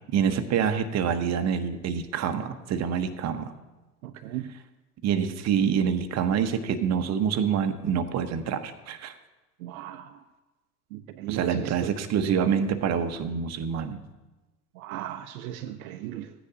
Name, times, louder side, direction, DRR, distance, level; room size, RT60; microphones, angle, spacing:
voice 1, 0.1-3.5 5.0-9.1 11.3-14.0, right 7 dB, 35° right, 8 dB, 0.9 m, -26 dB
voice 2, 4.0-4.5 9.6-10.2 10.9-12.0 14.8-16.3, right 12 dB, 65° right, 8 dB, 0.7 m, -37 dB
15.0 x 9.8 x 2.8 m, 1.1 s
hypercardioid pair, 80°, 47 cm